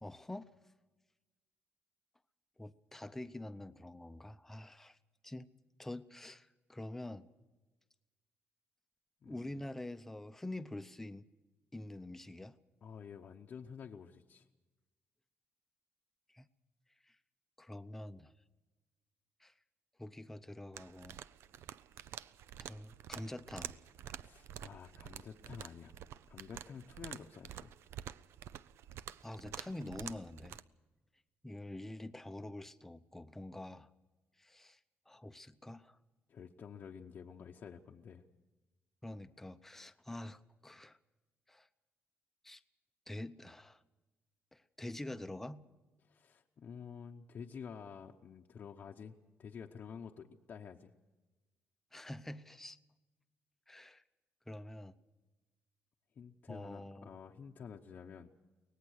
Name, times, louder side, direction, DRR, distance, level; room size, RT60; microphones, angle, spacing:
voice 1, 0.0-0.5 2.6-5.0 5.2-5.5 5.8-7.3 9.2-11.3 11.7-12.5 16.3-16.5 17.6-18.3 19.4-19.5 20.0-21.2 22.6-23.8 29.2-30.6 31.4-33.9 34.4-34.8 35.1-36.0 39.0-41.0 41.5-41.7 42.4-42.6 43.1-43.8 44.5-45.6 51.9-52.8 53.7-54.0 54.5-54.9 56.5-57.1, left 1 dB, 5° left, 11 dB, 0.7 m, -46 dB
voice 2, 9.2-9.7 12.8-14.4 24.2-25.9 26.3-27.7 36.3-38.2 46.0-50.9 56.2-58.3, left 6 dB, 45° left, 1 dB, 0.8 m, -50 dB
sound 1, 20.7-30.6, right 10 dB, 75° right, 0.6 m, -49 dB
23.5 x 18.5 x 6.4 m, 1.2 s
cardioid pair, 155°, 4 cm